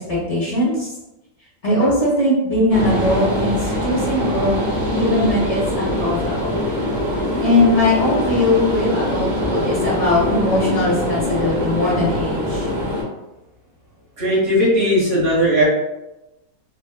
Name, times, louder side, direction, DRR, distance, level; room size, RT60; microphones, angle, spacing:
voice 1, 0.1-0.9 1.6-4.6 4.9-6.6 7.4-12.7, left 1 dB, 30° left, -7 dB, 0.7 m, -20 dB
sound 1, 2.7-13.0, left 1 dB, 60° right, 1.5 m, -23 dB
voice 2, 14.2-15.6, equal, 35° right, -7 dB, 1.2 m, -17 dB
4.0 x 2.2 x 2.2 m, 0.97 s
omnidirectional pair, 1.9 m